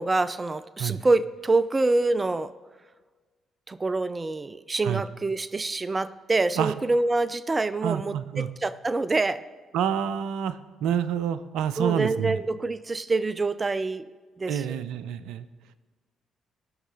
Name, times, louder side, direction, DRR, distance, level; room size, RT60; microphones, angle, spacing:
voice 1, 0.0-2.5 3.7-9.5 11.8-14.1 14.4-14.8, right 3 dB, 25° right, 15 dB, 0.5 m, -26 dB
voice 2, 7.8-8.5 9.7-12.4 14.5-15.5, right 9 dB, 70° right, 14 dB, 0.6 m, -28 dB
19.0 x 6.5 x 3.9 m, 1.4 s
hypercardioid pair, 45°, 0 cm